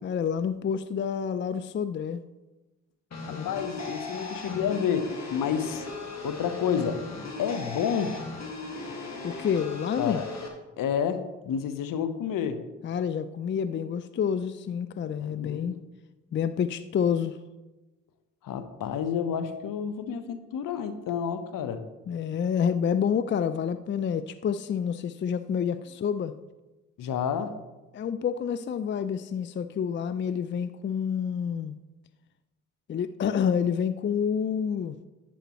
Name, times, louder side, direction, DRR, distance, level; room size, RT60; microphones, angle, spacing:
voice 1, 0.0-2.2 3.3-3.5 9.2-10.2 12.8-15.8 16.3-17.4 22.1-26.3 27.9-31.8 32.9-35.0, left 7 dB, 35° left, 13 dB, 0.4 m, -28 dB
sound 1, 3.1-10.5, left 2 dB, 50° left, 2.1 m, -38 dB
voice 2, 3.3-5.8 6.2-7.0 7.4-8.2 10.0-10.3 10.8-12.6 15.2-15.9 18.4-21.8 27.0-27.6, left 7 dB, 65° left, 11 dB, 1.0 m, -30 dB
11.5 x 9.0 x 3.1 m, 1.1 s
hypercardioid pair, 50°, 36 cm